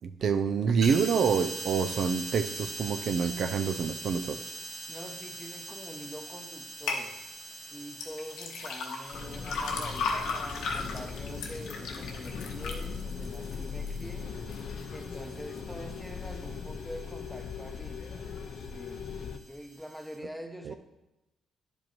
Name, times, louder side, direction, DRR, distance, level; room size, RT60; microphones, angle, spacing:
voice 1, 0.0-4.4 20.7-20.8, right 6 dB, 60° right, 8 dB, 0.4 m, -27 dB
sound 1, 0.8-20.2, right 2 dB, 85° right, 2.9 m, -44 dB
voice 2, 4.9-7.2 7.5-14.3 14.9-18.0 18.6-20.8, equal, ahead, 4 dB, 0.8 m, -45 dB
sound 2, 6.9-7.0 7.9-14.1 14.5-15.0 15.5-15.6, left 4 dB, 85° left, 0.9 m, -35 dB
sound 3, 9.1-19.4, left 5 dB, 65° left, 0.5 m, -39 dB
10.5 x 5.1 x 3.0 m, 0.97 s
cardioid pair, 90°, 0 cm